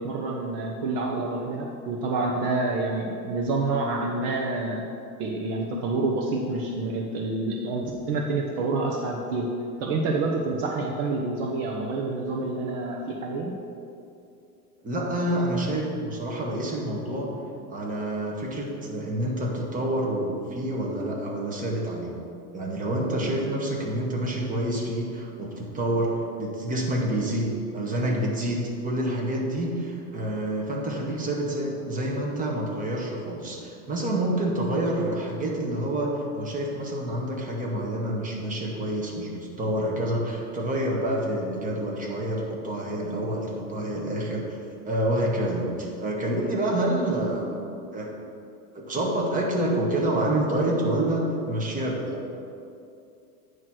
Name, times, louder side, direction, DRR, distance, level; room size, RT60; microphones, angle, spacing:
voice 1, 0.0-4.8 5.2-9.5 9.8-13.5, right 3 dB, 50° right, 0 dB, 0.9 m, -28 dB
voice 2, 14.8-17.3 17.7-22.1 22.5-44.6 44.8-47.5 47.9-48.1 48.7-52.2, right 1 dB, 15° right, -2 dB, 1.4 m, -28 dB
9.4 x 3.2 x 6.2 m, 2.5 s
hypercardioid pair, 115°, 46 cm